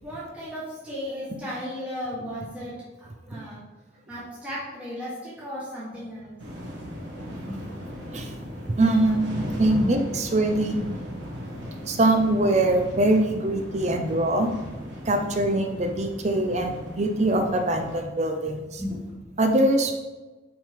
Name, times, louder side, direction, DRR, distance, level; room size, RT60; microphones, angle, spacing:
voice 1, 0.0-3.6 4.1-6.4 7.5-7.6 9.7-9.9 10.7-10.9 18.8-19.3, left 1 dB, 5° right, -9 dB, 1.5 m, -34 dB
sound 1, 6.4-18.0, equal, 80° right, 1.4 m, -37 dB
voice 2, 8.6-10.8 11.9-14.5 15.1-18.8 19.4-19.9, right 1 dB, 35° right, 5 dB, 0.6 m, -23 dB
5.8 x 3.8 x 5.1 m, 1.2 s
head